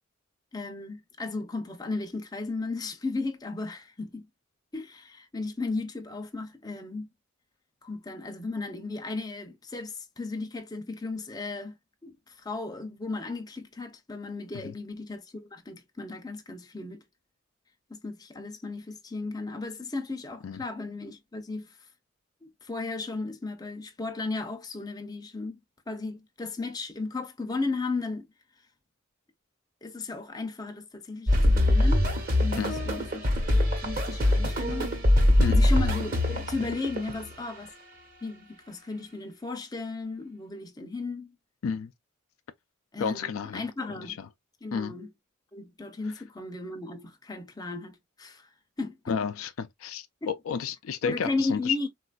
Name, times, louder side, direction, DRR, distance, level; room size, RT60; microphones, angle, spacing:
voice 1, 0.5-4.3 4.7-7.1 7.8-11.7 12.0-17.0 17.9-21.7 22.4-25.6 25.9-28.3 29.8-32.1 32.4-34.9 35.5-37.7 38.2-41.3 42.9-44.2 44.6-45.1 45.5-48.5 48.8-49.2 50.2-50.3 51.0-51.9, left 3 dB, 20° left, 0.6 m, -35 dB
sound 1, 31.3-37.3, left 1 dB, 45° right, 1.1 m, -23 dB
voice 2, 43.0-44.3 44.7-45.0 49.1-51.7, left 6 dB, 80° left, 0.4 m, -32 dB
3.8 x 2.5 x 2.3 m
head